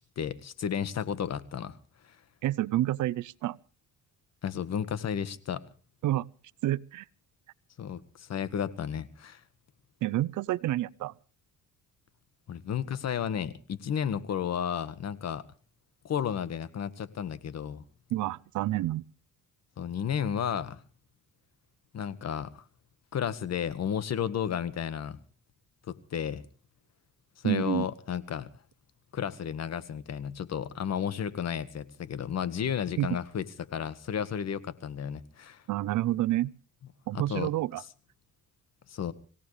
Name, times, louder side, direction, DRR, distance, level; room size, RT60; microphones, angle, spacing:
voice 1, 0.0-1.8 2.1-2.2 4.4-5.6 7.8-9.4 12.5-15.4 16.0-17.8 19.8-20.8 21.9-22.6 23.1-25.2 25.9-26.4 27.4-28.5 29.1-35.6 37.3-37.5 38.9-39.1, left 8 dB, 60° left, 1.6 m, -33 dB
voice 2, 2.4-3.6 6.0-6.3 6.6-7.0 10.0-11.1 18.1-19.0 27.4-27.9 33.0-33.1 35.7-36.5 37.1-37.8, right 15 dB, 80° right, 0.7 m, -28 dB
26.0 x 17.0 x 3.3 m
cardioid pair, 90°, 30 cm